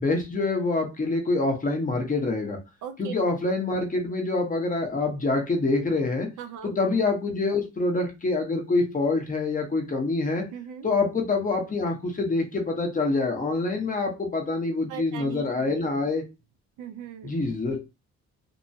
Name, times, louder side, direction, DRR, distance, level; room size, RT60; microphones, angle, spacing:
voice 1, 0.0-2.6 3.0-6.3 6.6-10.4 10.8-16.2 17.2-17.8, left 3 dB, 25° left, 3 dB, 1.0 m, -26 dB
voice 2, 2.8-3.1 6.4-6.8 10.5-10.9 14.9-15.9 16.8-17.3, right 9 dB, 80° right, 8 dB, 0.6 m, -39 dB
2.8 x 2.2 x 2.7 m, 0.26 s
cardioid pair, 90°, 30 cm